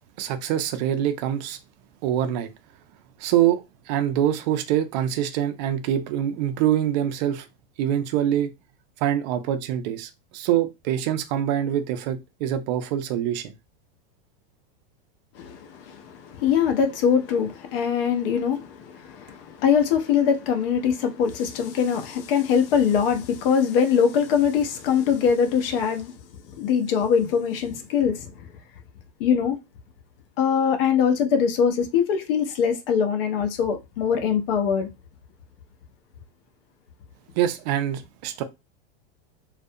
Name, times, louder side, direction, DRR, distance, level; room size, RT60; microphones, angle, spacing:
voice 1, 0.2-1.6 2.0-2.5 3.2-3.6 3.9-7.5 7.8-8.5 9.0-13.5 37.4-38.4, right 11 dB, 45° right, 0.4 m, -24 dB
voice 2, 15.4-26.1 26.6-28.3 29.2-29.6 30.4-34.9, left 7 dB, 65° left, 0.6 m, -22 dB
2.4 x 2.2 x 2.6 m
supercardioid pair, 150°, 30 cm